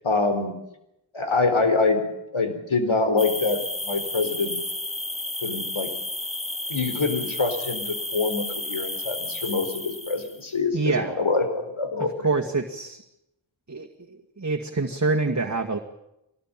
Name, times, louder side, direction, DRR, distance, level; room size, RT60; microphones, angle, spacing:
voice 1, 0.0-0.5 1.1-2.1 2.3-4.6 5.4-5.9 6.7-12.3, left 3 dB, 85° left, 7 dB, 4.3 m, -25 dB
sound 1, 3.2-10.4, left 1 dB, 15° left, 1.2 m, -32 dB
voice 2, 10.7-11.3 12.0-13.0 13.7-15.8, right 3 dB, 35° right, 2 dB, 2.0 m, -26 dB
23.0 x 19.5 x 9.0 m, 0.86 s
wide cardioid pair, 60°, 47 cm